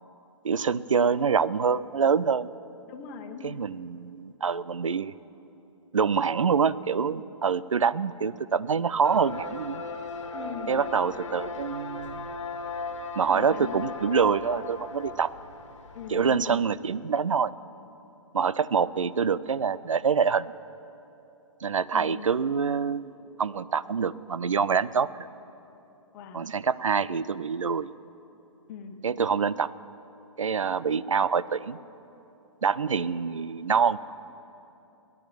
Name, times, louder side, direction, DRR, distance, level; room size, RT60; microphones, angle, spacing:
voice 1, 0.4-2.5 3.4-5.1 5.9-9.8 10.7-12.3 13.2-15.3 16.1-17.5 18.3-20.5 21.6-23.1 23.4-25.3 26.3-27.9 29.0-29.7 30.4-31.8 32.6-34.0, right 6 dB, 70° right, 17 dB, 0.5 m, -26 dB
voice 2, 2.9-3.6 10.3-10.8 13.3-13.8 15.9-16.6 21.9-22.3 26.1-26.5 28.7-29.0, left 7 dB, 30° left, 5 dB, 1.4 m, -40 dB
sound 1, 9.0-16.6, left 3 dB, 60° left, 1.7 m, -37 dB
18.0 x 11.0 x 7.1 m, 2.9 s
figure-of-eight pair, 125°, 17 cm